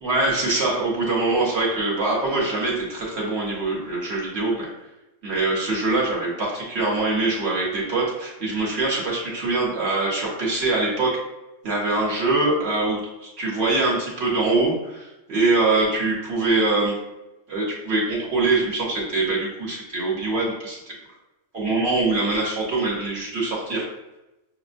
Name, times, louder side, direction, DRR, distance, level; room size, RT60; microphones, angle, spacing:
voice 1, 0.0-4.7 5.2-11.1 11.6-16.9 17.5-20.8 21.5-23.9, right 2 dB, 60° right, -4 dB, 1.1 m, -23 dB
6.3 x 2.1 x 2.5 m, 0.97 s
omnidirectional pair, 1.3 m